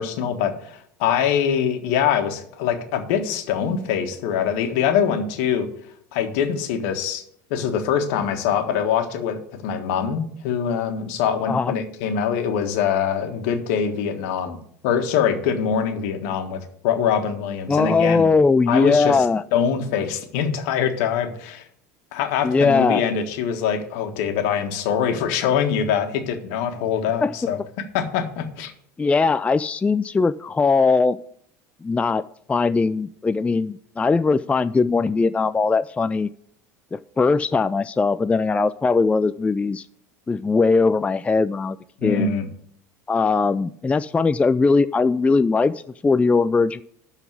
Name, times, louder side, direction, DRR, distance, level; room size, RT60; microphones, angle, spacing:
voice 1, 0.0-5.7 6.1-7.2 7.5-14.6 14.8-18.3 18.7-19.2 19.5-21.6 22.1-27.6 27.9-28.7 42.0-42.5, left 8 dB, 65° left, 6 dB, 1.5 m, -23 dB
voice 2, 17.7-19.4 22.4-23.0 27.2-27.4 29.0-31.2 31.8-32.2 32.5-36.3 36.9-39.9 40.3-41.8 42.0-42.3 43.1-46.8, left 4 dB, 15° left, 13 dB, 0.3 m, -20 dB
12.0 x 4.1 x 7.9 m, 0.65 s
hypercardioid pair, 80°, 9 cm